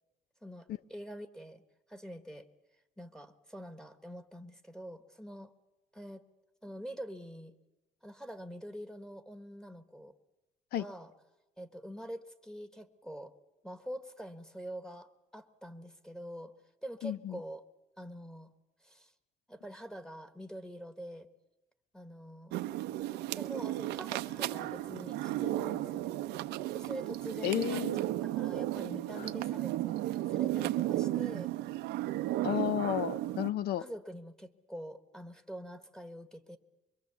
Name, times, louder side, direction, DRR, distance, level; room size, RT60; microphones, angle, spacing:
voice 1, 0.4-1.6 1.9-2.5 3.0-5.5 5.9-6.2 6.6-7.6 8.0-10.1 10.8-11.1 11.6-13.3 13.6-16.5 16.8-17.6 18.0-18.5 18.8-19.1 19.5-21.3 21.9-22.5 23.4-26.1 26.7-27.9 28.2-31.5 33.3-33.4 33.8-36.6, equal, 5° left, 8 dB, 1.4 m, -45 dB
voice 2, 17.0-17.4 27.4-28.0 29.2-29.3 32.4-33.8, left 11 dB, 70° left, 15 dB, 0.8 m, -32 dB
sound 1, 22.5-33.5, right 15 dB, 90° right, 0.7 m, -34 dB
24.5 x 22.5 x 7.0 m, 0.99 s
cardioid pair, 110°, 17 cm